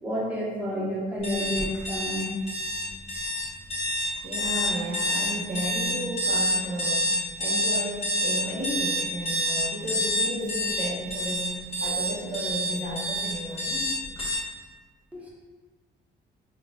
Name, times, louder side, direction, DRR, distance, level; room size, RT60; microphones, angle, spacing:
voice 1, 0.0-2.3 15.1-15.3, equal, 5° right, -6 dB, 1.1 m, -30 dB
sound 1, 1.2-14.3, equal, 30° left, 1.3 m, -27 dB
voice 2, 4.2-7.0 7.4-14.0, right 1 dB, 40° right, -5 dB, 0.9 m, -33 dB
4.1 x 2.4 x 3.6 m, 1.4 s
cardioid pair, 90°, 20 cm